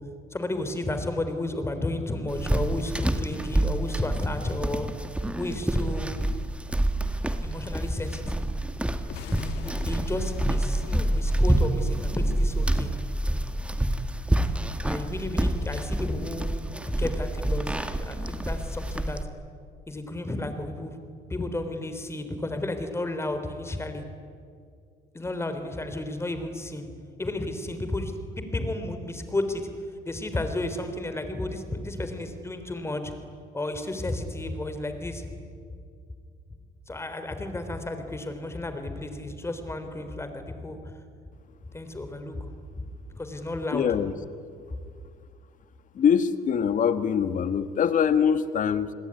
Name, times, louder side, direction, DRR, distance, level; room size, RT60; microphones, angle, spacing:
voice 1, 0.3-4.9 5.4-6.2 7.4-8.5 9.8-12.9 14.8-16.6 17.0-19.2 19.9-21.0 21.3-24.0 25.1-26.9 27.2-29.7 30.1-33.1 33.5-35.4 36.9-40.9 41.7-42.8 43.1-43.9 44.7-44.8, left 2 dB, 15° left, 8 dB, 3.6 m, -32 dB
sound 1, 2.3-19.2, right 1 dB, 5° right, 1.8 m, -27 dB
sound 2, 9.0-13.5, left 8 dB, 85° left, 2.0 m, -41 dB
voice 2, 43.7-44.1 45.9-48.9, left 7 dB, 50° left, 12 dB, 1.6 m, -23 dB
28.5 x 21.0 x 9.8 m, 2.3 s
cardioid pair, 110°, 17 cm